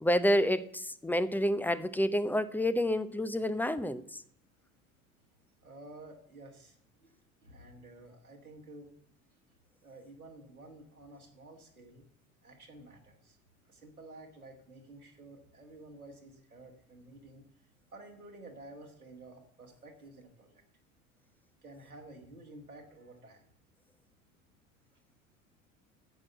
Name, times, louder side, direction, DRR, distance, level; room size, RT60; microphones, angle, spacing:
voice 1, 0.0-4.2, equal, 5° left, 15 dB, 0.5 m, -29 dB
voice 2, 5.6-9.0 9.8-12.0 12.4-13.4 13.7-17.5 17.9-20.6 21.6-23.5 24.9-25.0, right 2 dB, 90° right, 1 dB, 1.6 m, -52 dB
8.8 x 7.6 x 7.5 m, 0.65 s
figure-of-eight pair, 65°, 42 cm